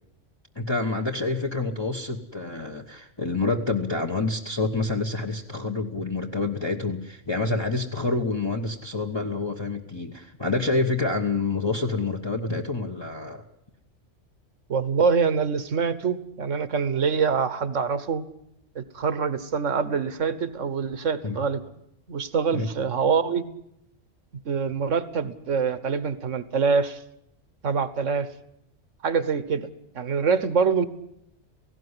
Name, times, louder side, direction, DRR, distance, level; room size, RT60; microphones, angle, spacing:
voice 1, 0.5-13.4 21.2-21.4 22.5-22.7, left 3 dB, 20° left, 1 dB, 1.2 m, -27 dB
voice 2, 14.7-18.2 18.7-21.6 22.1-23.4 24.4-27.0 27.6-28.3 29.0-29.7 29.9-30.8, right 5 dB, 80° right, 14 dB, 1.5 m, -25 dB
18.0 x 16.5 x 9.8 m, 0.76 s
omnidirectional pair, 1.3 m